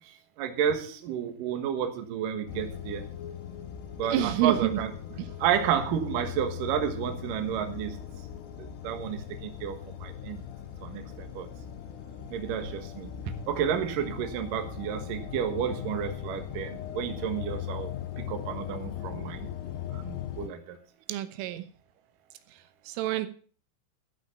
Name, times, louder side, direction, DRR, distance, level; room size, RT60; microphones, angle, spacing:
voice 1, 0.4-3.1 4.0-4.9 5.4-8.0 8.6-10.4 10.8-11.5 12.3-19.5 19.9-20.8, right 8 dB, 60° right, 6 dB, 2.4 m, -31 dB
sound 1, 2.5-20.5, left 10 dB, 70° left, 2.9 m, -39 dB
voice 2, 4.1-4.8 5.2-5.3 21.1-21.6 22.9-23.3, right 13 dB, 90° right, 11 dB, 3.6 m, -28 dB
13.5 x 6.2 x 7.1 m, 0.42 s
omnidirectional pair, 5.6 m